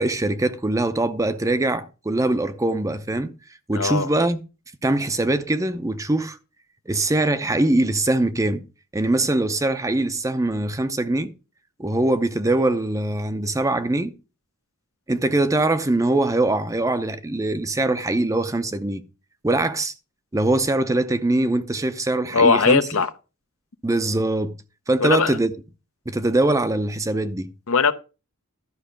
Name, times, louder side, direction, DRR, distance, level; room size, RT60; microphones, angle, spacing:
voice 1, 0.0-3.3 3.7-4.4 4.8-6.4 6.9-8.6 8.9-11.3 11.8-14.1 15.1-19.0 19.4-19.9 20.3-22.8 23.8-24.5 24.9-25.5 26.1-27.5, right 2 dB, 15° right, 0.6 m, -22 dB
voice 2, 3.7-4.1 22.3-23.1 25.0-25.3 27.7-27.9, left 5 dB, 65° left, 0.7 m, -19 dB
12.0 x 5.5 x 5.1 m
head